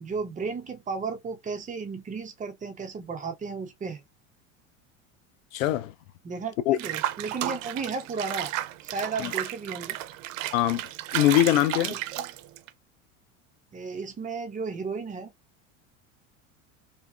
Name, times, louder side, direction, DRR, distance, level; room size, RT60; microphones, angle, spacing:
voice 1, 0.0-4.0 6.2-8.5 8.8-10.0 11.9-12.3 13.7-15.3, right 4 dB, 20° right, 0.5 m, -34 dB
voice 2, 5.5-5.9 6.7-6.8 9.2-9.3 10.5-10.8 11.1-12.0, left 14 dB, 90° left, 0.5 m, -22 dB
Water / Bathtub (filling or washing), 6.8-12.7, right 14 dB, 75° right, 0.5 m, -33 dB
2.8 x 2.2 x 2.4 m
hypercardioid pair, 95°, 39 cm